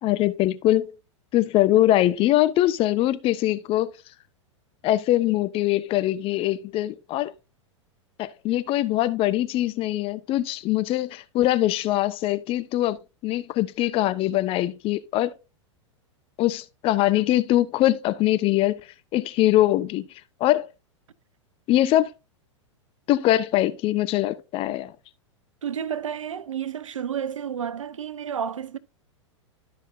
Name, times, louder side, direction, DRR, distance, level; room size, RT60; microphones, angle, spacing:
voice 1, 0.0-1.0 1.3-3.9 4.8-7.3 8.2-15.3 16.4-18.8 19.1-20.1 20.4-20.7 21.7-22.1 23.1-24.9, left 14 dB, 35° left, 0.7 m, -22 dB
voice 2, 25.6-28.8, right 8 dB, 80° right, 0.5 m, -31 dB
12.0 x 5.5 x 2.6 m
hypercardioid pair, 100°, 16 cm